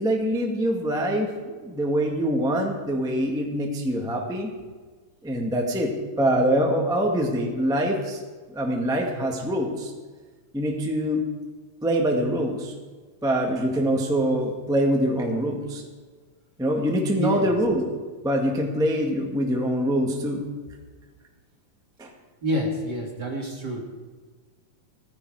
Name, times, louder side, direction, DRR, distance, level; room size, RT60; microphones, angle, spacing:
voice 1, 0.0-4.5 5.2-5.9 6.2-8.2 8.5-9.9 10.5-11.2 11.8-12.7 13.2-15.8 16.6-17.8 18.2-20.5 22.0-22.1, equal, ahead, 0 dB, 1.0 m, -24 dB
voice 2, 17.2-17.5 22.4-23.8, equal, 40° right, 0 dB, 1.9 m, -27 dB
16.5 x 15.0 x 4.9 m, 1.4 s
omnidirectional pair, 3.8 m